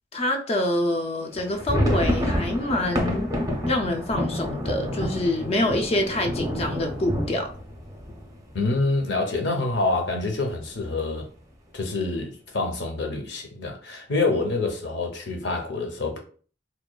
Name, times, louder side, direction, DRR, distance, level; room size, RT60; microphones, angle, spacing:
voice 1, 0.1-3.3 3.7-7.5, left 1 dB, 35° left, 0.3 m, -26 dB
sound 1, 1.3-9.1 9.4-9.5 9.7-10.0 10.5-11.0, equal, 20° right, 0.5 m, -28 dB
voice 2, 8.5-11.3 11.7-16.2, left 3 dB, 80° left, 0.7 m, -26 dB
2.9 x 2.1 x 2.2 m
head